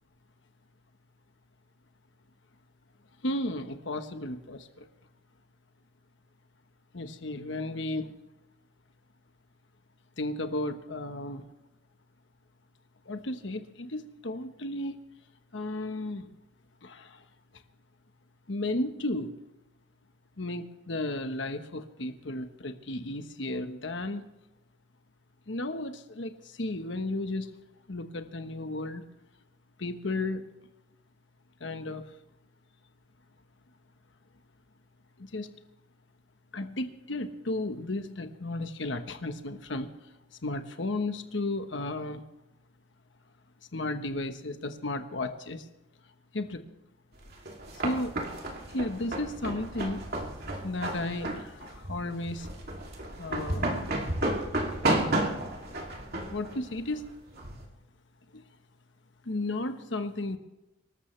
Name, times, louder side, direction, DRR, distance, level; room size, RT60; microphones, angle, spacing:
voice 1, 3.2-4.8 6.9-8.1 10.2-11.4 13.1-15.0 15.5-16.3 16.8-17.2 18.5-19.3 20.4-24.2 25.5-27.5 27.9-29.0 29.8-30.5 31.6-32.0 35.3-35.5 36.5-39.9 40.4-42.2 43.7-45.6 46.3-46.6 47.8-48.1 48.7-50.1 50.6-52.5 53.2-53.9 56.3-57.0 58.3-58.4 59.2-60.4, left 2 dB, 70° left, 7 dB, 1.2 m, -34 dB
sound 1, 47.2-57.6, right 1 dB, 50° right, 2.7 m, -32 dB
25.0 x 13.5 x 3.3 m, 0.95 s
head